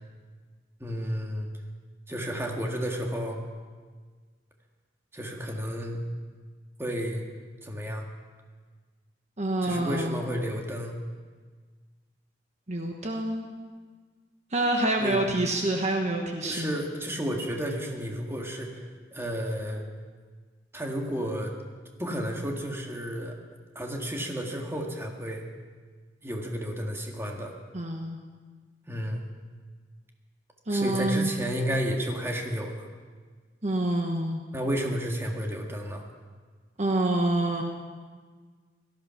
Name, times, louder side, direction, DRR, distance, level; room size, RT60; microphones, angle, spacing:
voice 1, 0.8-1.5 2.1-3.4 5.1-6.0 6.8-7.2 7.6-8.1 9.6-11.0 15.0-15.2 16.4-19.9 20.7-21.5 22.0-23.4 23.8-25.4 26.2-27.5 28.9-29.2 30.7-32.9 34.5-36.0, equal, 15° right, 1 dB, 1.8 m, -32 dB
voice 2, 9.4-10.2 12.7-13.5 14.5-16.7 27.7-28.2 30.7-31.3 33.6-34.4 36.8-37.6, right 1 dB, 40° right, 2 dB, 1.2 m, -27 dB
17.5 x 13.5 x 5.8 m, 1.5 s
head